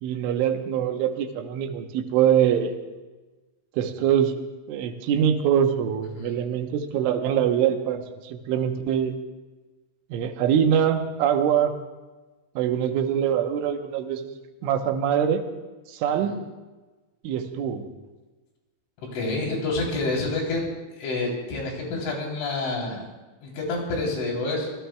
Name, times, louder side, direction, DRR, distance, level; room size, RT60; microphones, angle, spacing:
voice 1, 0.0-2.8 3.7-4.3 4.7-9.2 10.1-11.8 12.6-14.3 14.6-15.4 15.9-16.4 17.2-17.9, right 9 dB, 85° right, 6 dB, 3.5 m, -23 dB
voice 2, 19.1-20.7 21.0-23.0 23.4-24.7, left 2 dB, 80° left, -1 dB, 5.9 m, -28 dB
25.5 x 17.5 x 2.3 m, 1.2 s
omnidirectional pair, 5.4 m